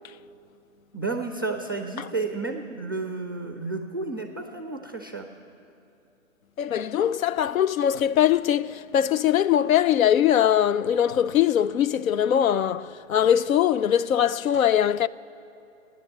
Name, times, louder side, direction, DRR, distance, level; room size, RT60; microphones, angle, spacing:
voice 1, 0.9-5.3, right 3 dB, 20° right, 0.4 m, -31 dB
voice 2, 6.6-15.1, left 10 dB, 85° left, 0.5 m, -21 dB
15.5 x 10.5 x 7.7 m
hypercardioid pair, 150°, 41 cm